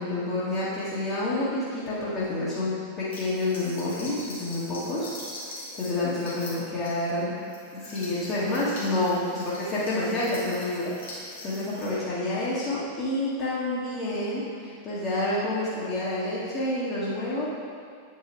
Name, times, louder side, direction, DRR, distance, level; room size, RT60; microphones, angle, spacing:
voice 1, 0.0-5.1 5.8-7.3 7.7-17.5, left 2 dB, 30° left, -10 dB, 1.8 m, -28 dB
sound 1, 3.1-11.9, left 1 dB, 65° left, 1.9 m, -43 dB
8.8 x 5.5 x 3.2 m, 2.2 s
figure-of-eight pair, 90°, 0 cm